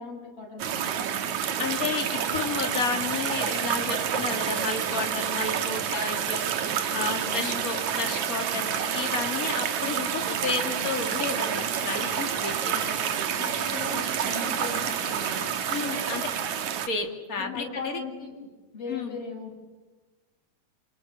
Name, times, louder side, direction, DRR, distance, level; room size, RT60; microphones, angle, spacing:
voice 1, 0.0-1.4 7.2-7.6 12.8-15.5 17.4-18.3 18.7-19.6, left 3 dB, 50° left, 0 dB, 7.1 m, -38 dB
sound 1, 0.6-16.9, right 8 dB, 80° right, 2.8 m, -29 dB
voice 2, 1.6-6.4 6.9-13.1 15.7-16.3 16.9-18.0 18.9-19.2, left 4 dB, 30° left, 3 dB, 2.6 m, -32 dB
Rain, 1.8-16.3, right 1 dB, 15° right, 5.1 m, -44 dB
27.0 x 26.5 x 6.9 m, 1.2 s
omnidirectional pair, 3.3 m